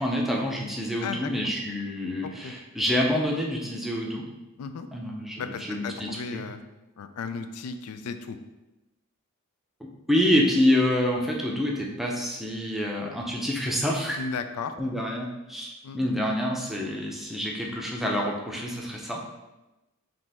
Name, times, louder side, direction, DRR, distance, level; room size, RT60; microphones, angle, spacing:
voice 1, 0.0-4.3 4.9-5.4 5.7-6.4 10.1-14.2 14.8-19.2, left 1 dB, ahead, -1 dB, 0.6 m, -27 dB
voice 2, 2.2-2.5 4.6-4.9 5.4-6.6 7.0-8.4 14.2-14.8 15.8-16.0, left 5 dB, 90° left, 9 dB, 0.4 m, -35 dB
5.1 x 3.0 x 3.5 m, 1.0 s
head